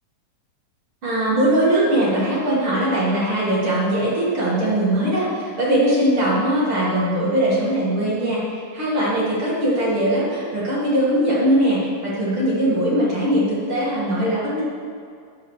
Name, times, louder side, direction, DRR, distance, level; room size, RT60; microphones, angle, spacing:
voice 1, 1.0-14.6, right 1 dB, 40° right, -8 dB, 2.6 m, -20 dB
8.9 x 7.6 x 6.4 m, 2.3 s
omnidirectional pair, 4.1 m